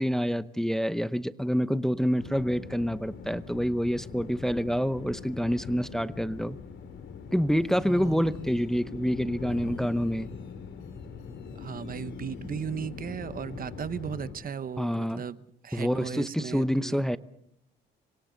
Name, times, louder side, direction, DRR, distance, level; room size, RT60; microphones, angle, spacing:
voice 1, 0.0-6.6 7.3-10.3 14.8-15.2 15.7-17.2, equal, ahead, 0.8 m, -27 dB
sound 1, 2.2-14.3, left 6 dB, 70° left, 2.9 m, -42 dB
voice 2, 7.8-8.3 11.6-17.0, right 7 dB, 45° right, 1.0 m, -37 dB
27.0 x 24.0 x 4.0 m
cardioid pair, 90°, 20 cm